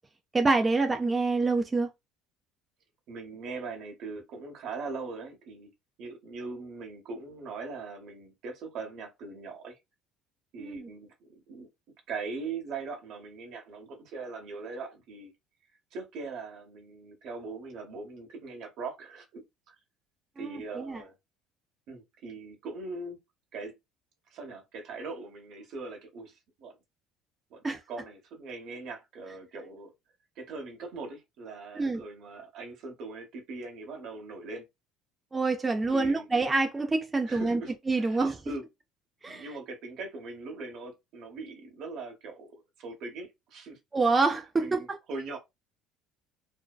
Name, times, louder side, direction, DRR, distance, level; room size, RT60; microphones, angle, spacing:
voice 1, 0.3-1.9 10.6-10.9 20.4-21.0 27.6-27.8 31.8-32.0 35.3-37.6 37.9-38.4 39.2-39.5 43.9-45.0, right 3 dB, 20° right, 0.4 m, -26 dB
voice 2, 3.1-5.7 6.0-9.8 10.5-11.7 12.1-15.3 15.9-19.8 20.4-21.1 21.9-23.2 23.5-23.8 24.3-26.7 27.5-29.9 30.4-34.6 35.9-36.3 37.2-38.6 39.3-42.5 42.8-43.8 44.6-45.4, right 3 dB, 60° right, 0.8 m, -41 dB
2.5 x 2.1 x 2.3 m
supercardioid pair, 100°, 0 cm